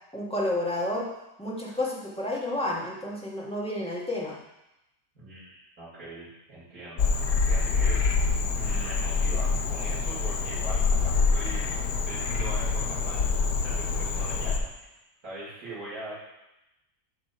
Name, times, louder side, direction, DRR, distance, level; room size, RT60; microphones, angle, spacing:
voice 1, 0.1-1.1 1.4-4.4, left 1 dB, 5° left, -6 dB, 1.4 m, -30 dB
voice 2, 5.1-8.0 8.5-11.7 12.1-14.9 15.2-16.2, right 1 dB, 85° right, -9 dB, 2.9 m, -41 dB
Frog, 7.0-14.6, left 4 dB, 90° left, 1.2 m, -26 dB
9.5 x 3.4 x 5.6 m, 0.92 s
omnidirectional pair, 1.5 m